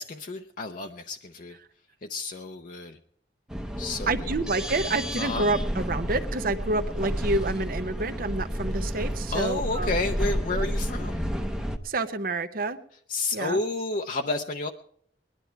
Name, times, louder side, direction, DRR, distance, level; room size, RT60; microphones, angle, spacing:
voice 1, 0.0-1.6 2.1-3.0 3.8-4.3 5.2-5.5 9.3-11.3 13.1-14.7, left 3 dB, 50° left, 3 dB, 0.7 m, -31 dB
sound 1, 3.5-11.8, equal, 5° right, 0.7 m, -31 dB
voice 2, 4.1-10.0 10.5-10.7 11.8-12.8 13.3-13.6, right 2 dB, 55° right, 10 dB, 0.7 m, -28 dB
20.5 x 10.5 x 4.5 m, 0.62 s
head